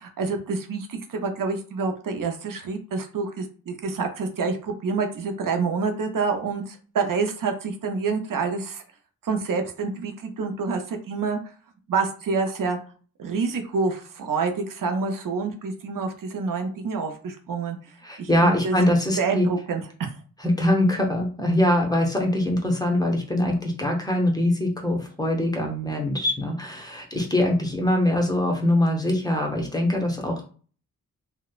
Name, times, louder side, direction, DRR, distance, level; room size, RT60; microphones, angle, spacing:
voice 1, 0.0-8.8 9.2-11.4 11.9-12.8 13.2-17.9 18.2-18.8 19.2-20.1, right 4 dB, 75° right, 5 dB, 0.5 m, -27 dB
voice 2, 18.0-19.5 20.4-30.4, left 1 dB, 10° left, 0 dB, 0.6 m, -23 dB
3.0 x 2.1 x 2.3 m, 0.40 s
wide cardioid pair, 110°, 33 cm